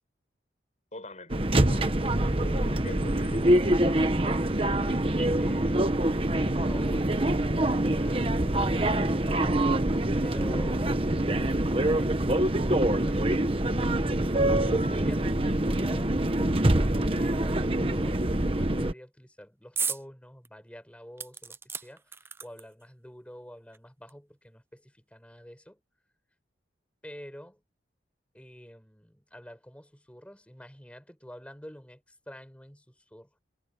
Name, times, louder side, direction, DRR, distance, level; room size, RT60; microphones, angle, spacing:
voice 1, 0.9-3.9, left 1 dB, 40° left, 7.4 m, -45 dB
sound 1, 1.3-18.9, right 1 dB, 30° right, 1.2 m, -25 dB
voice 2, 4.2-6.2 6.4-9.0 10.2-10.9 11.3-12.2 12.9-13.5 14.5-25.8 27.0-27.6 28.3-33.4, equal, 5° left, 7.3 m, -48 dB
sound 2, 19.8-20.0 20.4-20.5 21.2-22.8 23.7-23.8 24.1-24.2, right 5 dB, 15° right, 0.4 m, -34 dB
head